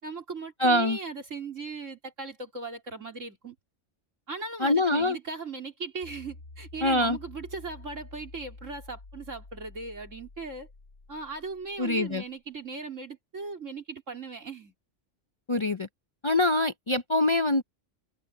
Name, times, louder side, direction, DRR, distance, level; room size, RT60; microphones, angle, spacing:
voice 1, 0.0-3.6 4.3-10.7 11.1-14.7, right 4 dB, 90° right, 4.1 m, -38 dB
voice 2, 0.6-1.0 4.6-5.2 6.8-7.2 11.8-12.2 15.5-15.9 16.2-17.6, left 1 dB, 35° left, 0.5 m, -24 dB
sound 1, 6.0-12.3, left 2 dB, 75° left, 2.8 m, -49 dB
omnidirectional pair, 1.3 m